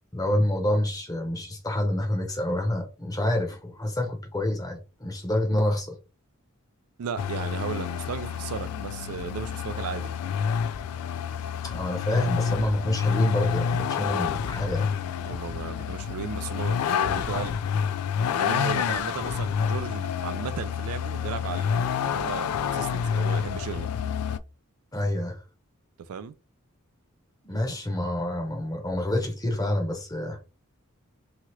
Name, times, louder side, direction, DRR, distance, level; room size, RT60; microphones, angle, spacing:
voice 1, 0.1-6.0 11.6-14.9 24.9-25.4 27.4-30.4, left 1 dB, 15° left, 0.7 m, -27 dB
voice 2, 7.0-10.1 15.2-17.6 18.4-23.9 26.1-26.3, right 6 dB, 80° right, 0.4 m, -35 dB
Vehicle, 7.2-24.4, left 7 dB, 90° left, 0.3 m, -28 dB
2.9 x 2.3 x 3.0 m
head